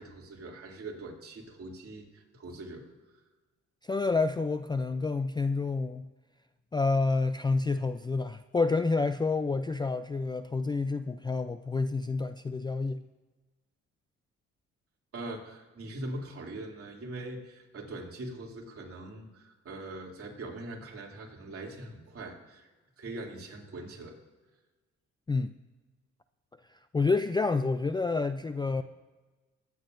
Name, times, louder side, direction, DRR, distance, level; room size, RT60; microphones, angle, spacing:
voice 1, 0.0-2.9 15.1-22.7 23.0-24.2, right 2 dB, 50° right, -1 dB, 2.8 m, -42 dB
voice 2, 3.8-6.1 6.7-13.1 25.3-25.5 26.7-28.8, left 3 dB, 15° left, 10 dB, 0.3 m, -29 dB
21.5 x 9.4 x 2.6 m, 1.2 s
cardioid pair, 90°, 30 cm